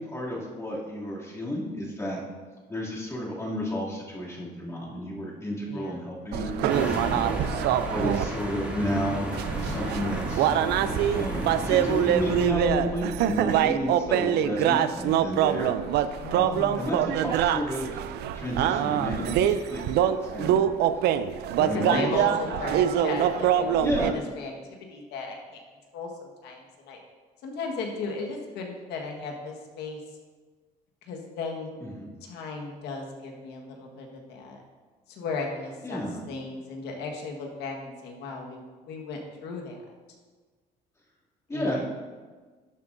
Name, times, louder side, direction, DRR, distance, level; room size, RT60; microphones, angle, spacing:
voice 1, 0.0-2.2 2.7-7.6 7.9-9.3 9.6-10.5 11.1-15.7 16.3-18.0 18.3-20.6 21.6-22.0 22.4-22.5 23.8-24.1 31.8-32.1 35.8-36.2 41.5-41.8, equal, 15° left, -6 dB, 2.5 m, -31 dB
voice 2, 5.7-6.0 16.2-16.8 21.5-24.5 24.9-25.6 25.9-27.0 27.4-30.0 31.0-31.8 32.2-34.6 35.1-39.8 41.5-41.8, left 4 dB, 85° left, 1 dB, 1.5 m, -36 dB
sound 1, 6.3-8.3 9.3-24.1, right 10 dB, 75° right, 0.4 m, -25 dB
sound 2, 6.7-12.5, equal, 5° right, 2.5 m, -33 dB
11.5 x 7.3 x 2.6 m, 1.4 s
cardioid pair, 110°, 17 cm